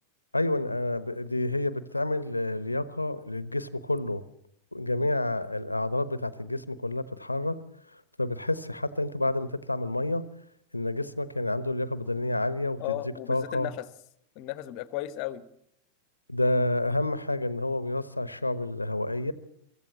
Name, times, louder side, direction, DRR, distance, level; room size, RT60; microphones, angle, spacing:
voice 1, 0.3-4.2 4.7-7.6 7.9-10.2 10.7-13.7 16.3-19.3, left 2 dB, 85° left, 16 dB, 1.0 m, -29 dB
voice 2, 12.8-13.8 14.3-15.4, left 14 dB, 45° left, 16 dB, 1.2 m, -34 dB
24.0 x 15.0 x 7.3 m, 0.72 s
figure-of-eight pair, 90°, 0 cm